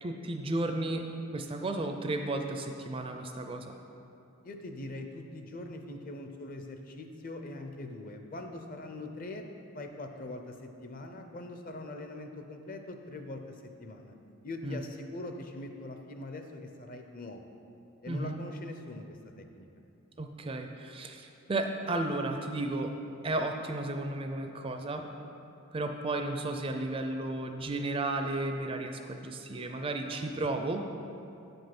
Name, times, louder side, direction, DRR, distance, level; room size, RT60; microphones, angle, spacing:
voice 1, 0.0-1.1 1.3-3.8 14.6-14.8 18.1-18.4 20.2-22.9 23.2-25.0 25.7-30.8, right 2 dB, 25° right, 5 dB, 0.4 m, -33 dB
voice 2, 4.4-9.5 9.7-14.1 14.4-17.4 18.0-19.7, left 2 dB, 40° left, 5 dB, 0.6 m, -42 dB
8.1 x 5.3 x 5.9 m, 2.7 s
head